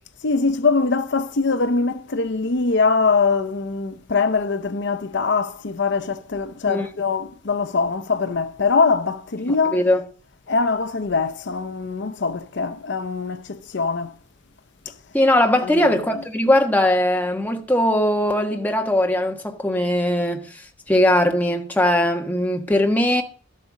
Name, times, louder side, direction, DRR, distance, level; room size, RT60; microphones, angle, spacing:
voice 1, 0.2-9.8 10.5-14.1 14.9-15.0 15.6-15.9 16.1-16.2, left 4 dB, 60° left, 0.7 m, -22 dB
voice 2, 15.1-20.4 20.9-23.2, left 1 dB, 10° left, 1.4 m, -20 dB
13.0 x 8.5 x 5.2 m
head